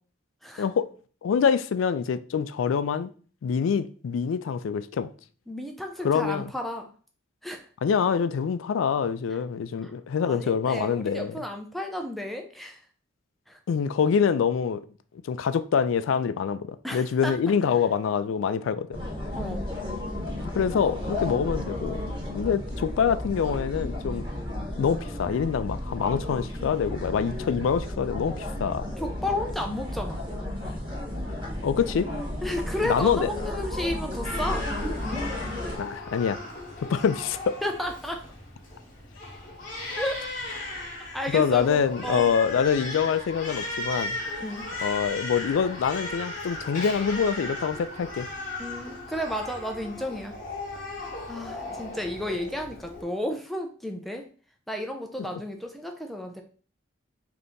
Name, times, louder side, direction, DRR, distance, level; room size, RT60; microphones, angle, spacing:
voice 1, 1.2-3.1 3.4-5.1 6.0-6.5 7.8-11.3 13.7-14.8 15.2-19.0 20.4-22.0 22.3-24.2 24.8-28.9 31.6-32.1 32.8-33.3 35.8-36.4 36.8-37.6 41.3-44.2 44.8-48.3, left 7 dB, 80° left, 0.3 m, -25 dB
voice 2, 5.5-6.9 7.4-7.7 9.8-9.9 10.2-12.9 13.5-13.6 16.8-17.3 19.4-19.6 29.0-30.3 32.4-34.7 37.6-38.2 39.9-40.3 41.1-42.2 44.4-44.7 48.6-50.4 51.3-54.3 54.7-56.4, left 1 dB, ahead, 0.4 m, -32 dB
sound 1, 18.9-35.8, left 1 dB, 25° right, 1.3 m, -33 dB
Crying sobbing, 34.2-53.0, left 2 dB, 40° left, 1.3 m, -37 dB
3.5 x 2.8 x 3.8 m
head